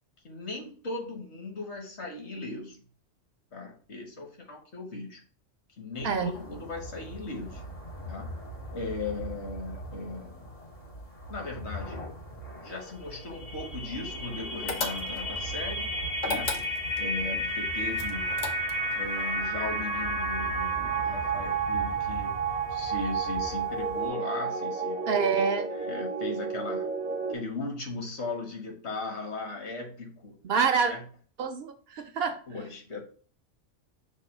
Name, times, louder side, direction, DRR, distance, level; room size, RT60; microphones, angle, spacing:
voice 1, 0.2-2.8 3.5-5.2 5.8-7.6 8.0-8.4 8.7-10.6 11.3-12.0 12.6-15.9 16.2-16.7 17.0-18.3 18.9-22.3 22.7-25.0 25.7-26.9 27.3-30.4 30.9-31.0 32.5-33.1, left 3 dB, 65° left, 3 dB, 1.3 m, -38 dB
sound 1, 5.9-24.1, right 1 dB, 90° left, 3.0 m, -42 dB
sound 2, 13.1-27.4, right 3 dB, 10° right, 0.4 m, -31 dB
sound 3, 14.7-15.4 16.2-17.1 17.9-18.9, left 3 dB, 45° left, 0.7 m, -33 dB
voice 2, 25.1-25.7 30.4-30.9 31.4-32.4, right 6 dB, 60° right, 6 dB, 0.7 m, -26 dB
5.4 x 2.2 x 4.3 m, 0.43 s
omnidirectional pair, 1.3 m